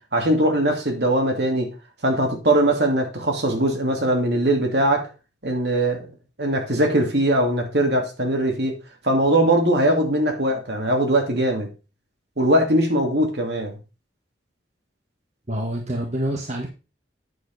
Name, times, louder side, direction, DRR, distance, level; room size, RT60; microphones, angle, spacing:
voice 1, 0.1-1.7 2.0-5.1 5.4-6.1 6.4-8.8 9.0-11.7 12.4-13.8, right 1 dB, 65° right, 2.5 m, -21 dB
voice 2, 15.5-16.7, right 1 dB, 40° right, 1.4 m, -27 dB
9.3 x 7.0 x 4.1 m
head